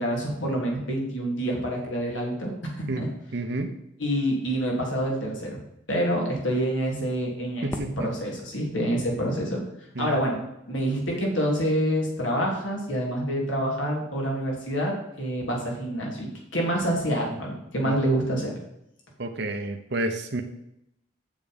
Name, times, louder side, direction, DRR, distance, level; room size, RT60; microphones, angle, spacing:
voice 1, 0.0-3.1 4.0-5.6 5.9-9.6 10.0-10.4 10.7-18.5, equal, 80° left, -1 dB, 3.2 m, -27 dB
voice 2, 3.3-3.7 7.6-8.1 10.0-10.2 17.8-18.0 19.2-20.4, right 2 dB, 60° right, 4 dB, 0.9 m, -30 dB
Fireworks, 7.7-10.6, equal, 15° left, 0.9 m, -42 dB
7.6 x 7.1 x 5.3 m, 0.81 s
head